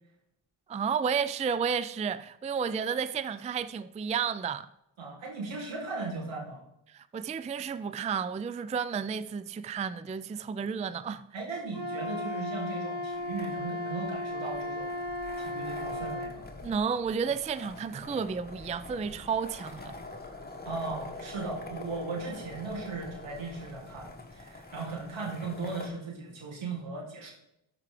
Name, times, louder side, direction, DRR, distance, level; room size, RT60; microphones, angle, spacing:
voice 1, 0.7-4.7 6.9-11.3 16.6-20.0, right 6 dB, 15° right, 0.3 m, -32 dB
voice 2, 5.0-6.6 11.3-15.0 15.4-16.5 20.6-27.3, right 3 dB, 75° right, 2.7 m, -37 dB
Wind instrument woodwind instrument, 11.7-16.4, left 1 dB, 45° right, 1.8 m, -35 dB
sound 1, 13.1-25.9, left 2 dB, 20° left, 1.8 m, -45 dB
12.5 x 4.9 x 3.2 m
supercardioid pair, 50°, 47 cm